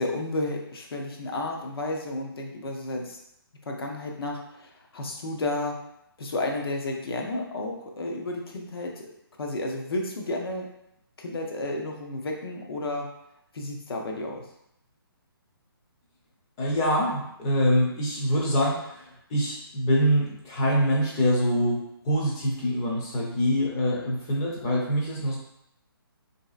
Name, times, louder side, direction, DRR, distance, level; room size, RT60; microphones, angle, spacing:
voice 1, 0.0-3.2 3.7-5.8 6.2-8.9 9.4-10.7 11.2-13.1 13.5-14.4, left 2 dB, 70° left, 1 dB, 0.7 m, -32 dB
voice 2, 16.6-25.4, equal, 15° left, -3 dB, 0.4 m, -25 dB
3.2 x 2.7 x 2.4 m, 0.78 s
hypercardioid pair, 165°, 13 cm